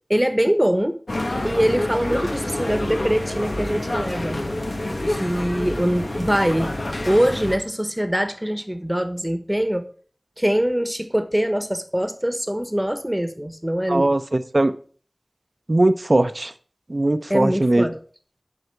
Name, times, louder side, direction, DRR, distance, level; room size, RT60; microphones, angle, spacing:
voice 1, 0.1-1.0 1.4-4.4 5.1-6.7 7.0-9.8 10.4-14.1 17.3-18.0, equal, 10° right, 8 dB, 1.2 m, -23 dB
sound 1, 1.1-7.6, left 1 dB, 85° left, 1.5 m, -27 dB
voice 2, 13.9-14.7 15.7-16.5 16.9-17.8, right 2 dB, 60° right, 11 dB, 0.7 m, -19 dB
11.0 x 5.0 x 4.6 m, 0.43 s
wide cardioid pair, 40°, 0 cm